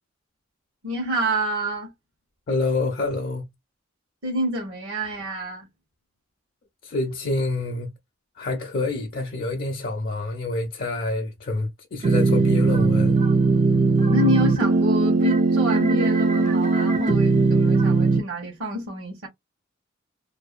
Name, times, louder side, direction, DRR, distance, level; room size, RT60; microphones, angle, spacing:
voice 1, 0.8-1.9 4.2-5.7 14.0-19.3, equal, 70° right, 1.1 m, -28 dB
voice 2, 2.5-3.5 6.8-7.9 8.4-13.2, left 2 dB, 50° left, 0.5 m, -27 dB
sound 1, 12.0-18.2, right 3 dB, 40° right, 0.4 m, -19 dB
2.6 x 2.1 x 2.4 m
head